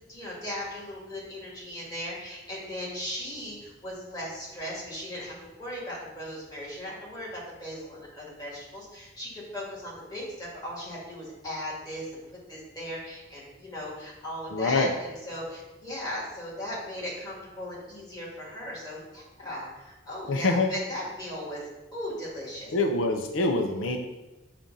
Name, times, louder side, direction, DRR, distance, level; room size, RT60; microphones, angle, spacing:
voice 1, 0.1-12.2 12.5-21.6 21.9-22.7, equal, 20° left, -5 dB, 1.9 m, -37 dB
voice 2, 14.5-14.9 20.3-20.7 22.7-24.0, left 2 dB, 90° left, 4 dB, 0.6 m, -25 dB
7.4 x 2.5 x 5.3 m, 1.1 s
head